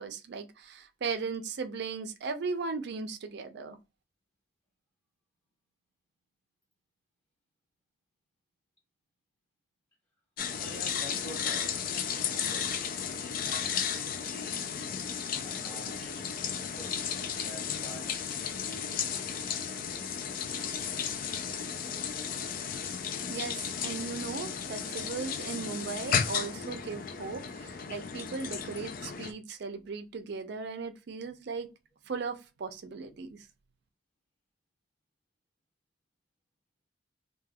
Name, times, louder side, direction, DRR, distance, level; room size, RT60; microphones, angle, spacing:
voice 1, 0.0-3.8 23.3-31.7 32.1-33.5, right 4 dB, 60° right, 0.4 m, -37 dB
sound 1, 10.4-29.3, left 7 dB, 50° left, 0.4 m, -34 dB
voice 2, 10.6-12.9 13.1-14.9 15.4-16.4 16.7-19.7, equal, 20° left, 0.7 m, -48 dB
2.2 x 2.2 x 3.3 m
head